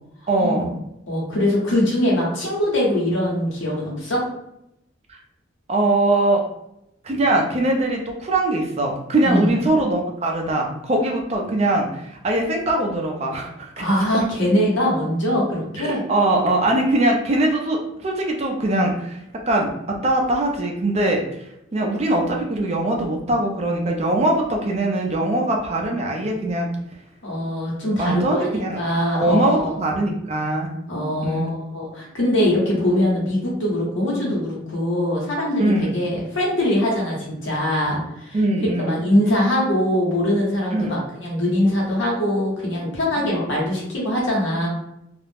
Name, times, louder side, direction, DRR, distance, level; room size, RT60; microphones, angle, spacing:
voice 1, 0.3-0.8 5.1-5.2 5.7-6.4 7.0-13.9 15.8-19.2 19.5-21.2 21.7-26.7 28.0-28.8 29.1-30.7 31.2-31.5 34.1-34.3 35.6-35.9 38.3-39.1 40.7-41.0, right 2 dB, 35° right, 1 dB, 0.4 m, -21 dB
voice 2, 1.1-4.2 9.2-9.5 13.8-16.0 27.2-29.7 30.9-38.4 38.9-44.7, left 1 dB, 80° left, -4 dB, 1.0 m, -22 dB
2.4 x 2.0 x 3.3 m, 0.82 s
head